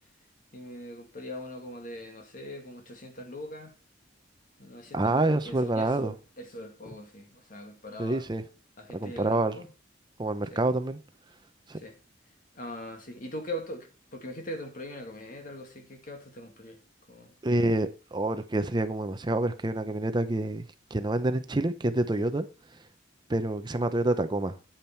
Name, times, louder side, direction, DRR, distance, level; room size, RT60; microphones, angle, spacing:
voice 1, 0.5-3.7 4.6-8.2 8.8-9.7 10.5-10.6 11.8-12.0 12.6-16.8 17.1-17.4, equal, 45° left, 2.1 m, -41 dB
voice 2, 4.9-6.1 8.0-8.4 8.9-9.6 10.2-11.0 11.7-11.8 17.4-20.6 20.9-22.5 23.3-24.5, right 2 dB, 25° right, 0.6 m, -27 dB
8.8 x 8.7 x 4.4 m
head